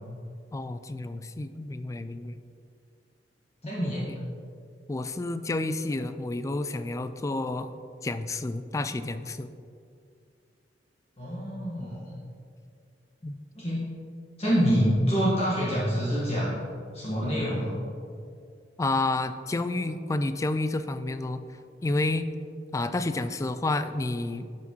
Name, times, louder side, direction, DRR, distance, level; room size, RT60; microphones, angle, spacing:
voice 1, 0.5-2.4 3.8-4.2 4.9-7.7 8.0-9.5 13.2-13.4 18.8-21.4 21.8-22.3 22.7-24.5, left 2 dB, 20° left, 11 dB, 0.3 m, -30 dB
voice 2, 3.6-4.0 11.2-12.1 13.5-13.9 14.4-16.6 16.9-17.8, equal, 35° left, -7 dB, 1.6 m, -26 dB
12.0 x 5.8 x 3.1 m, 2.3 s
head